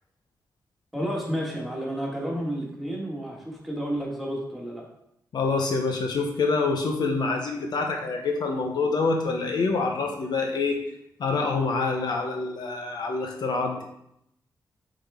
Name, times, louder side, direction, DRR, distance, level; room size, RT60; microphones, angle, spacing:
voice 1, 0.9-4.8, equal, ahead, -3 dB, 1.7 m, -31 dB
voice 2, 5.3-10.8 11.2-13.8, left 4 dB, 65° left, 2 dB, 0.9 m, -26 dB
8.5 x 3.8 x 3.5 m, 0.78 s
wide cardioid pair, 135°, 8 cm